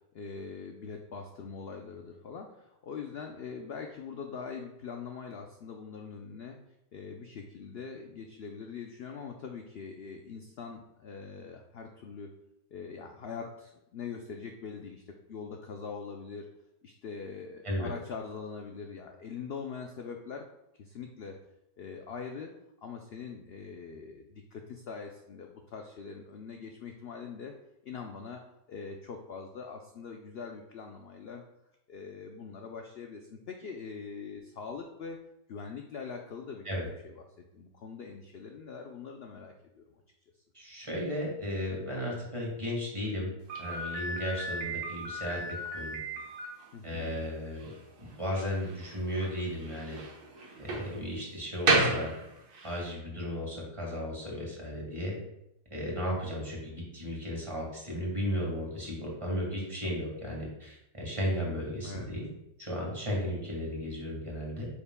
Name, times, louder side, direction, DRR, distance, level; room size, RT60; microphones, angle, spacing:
voice 1, 0.1-6.6 6.9-12.3 12.7-16.5 16.8-20.5 20.8-21.4 21.8-22.5 22.8-27.5 27.8-28.4 28.7-31.4 31.9-35.2 35.5-36.6 37.0-37.2 37.5-40.0 46.7-47.3 61.8-62.1, left 5 dB, 65° left, 3 dB, 0.6 m, -42 dB
voice 2, 40.5-43.3 43.6-46.0 46.8-47.7 48.2-50.0 50.6-52.1 52.6-55.2 55.7-62.3 62.6-64.7, equal, 20° right, -3 dB, 1.8 m, -35 dB
Slam, 43.5-52.8, right 2 dB, 80° right, 1.6 m, -34 dB
8.1 x 5.6 x 2.2 m, 0.86 s
omnidirectional pair, 1.6 m